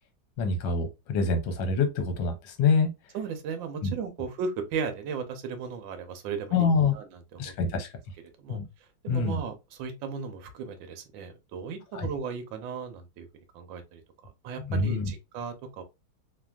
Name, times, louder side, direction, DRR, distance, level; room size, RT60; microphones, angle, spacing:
voice 1, 0.4-2.9 3.8-3.9 6.5-6.9 7.4-7.9 8.5-8.6 9.1-9.4 11.9-12.1 14.6-15.1, left 4 dB, 70° left, 1.3 m, -26 dB
voice 2, 3.1-7.5 8.4-8.6 9.0-13.3 13.5-15.8, right 5 dB, 75° right, 1.3 m, -36 dB
3.2 x 2.5 x 2.2 m
omnidirectional pair, 2.3 m